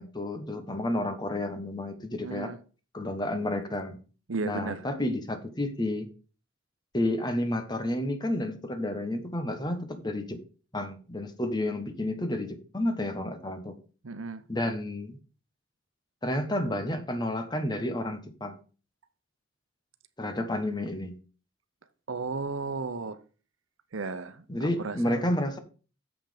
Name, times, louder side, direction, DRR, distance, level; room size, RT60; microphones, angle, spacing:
voice 1, 0.0-2.5 2.9-4.0 4.4-6.1 6.9-10.4 10.7-13.7 14.5-15.2 16.2-18.6 20.2-21.2 24.5-25.6, left 1 dB, 20° left, 1.1 m, -31 dB
voice 2, 2.2-2.6 4.3-4.9 14.0-14.4 22.1-23.2 23.9-25.2, right 4 dB, 85° right, 0.8 m, -34 dB
7.3 x 5.8 x 5.0 m
head